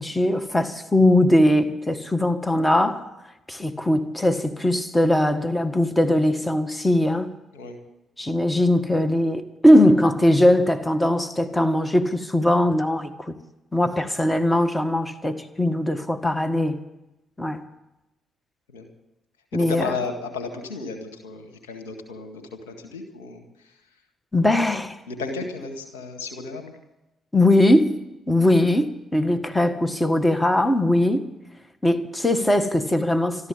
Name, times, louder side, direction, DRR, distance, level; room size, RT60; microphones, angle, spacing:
voice 1, 0.0-3.0 3.5-7.3 8.2-13.3 13.7-16.8 17.4-17.6 19.5-19.9 24.3-25.0 27.3-27.9 28.3-31.3 31.8-33.5, left 1 dB, 15° left, 1.6 m, -20 dB
voice 2, 19.5-23.7 25.1-26.8, left 4 dB, 85° left, 1.9 m, -34 dB
13.5 x 12.5 x 8.5 m
hypercardioid pair, 45°, 0 cm